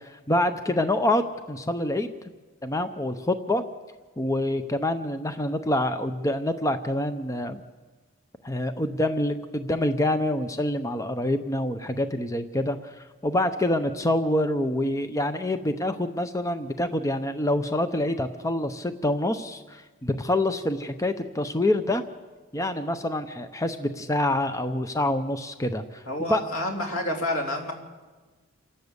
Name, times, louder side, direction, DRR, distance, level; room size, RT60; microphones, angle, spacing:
voice 1, 0.0-2.1 2.6-3.6 4.2-7.6 8.4-22.0 22.5-26.4, left 1 dB, 15° left, 9 dB, 0.6 m, -26 dB
voice 2, 26.1-27.7, left 1 dB, 85° left, 1 dB, 3.5 m, -29 dB
28.0 x 12.0 x 8.1 m, 1.3 s
head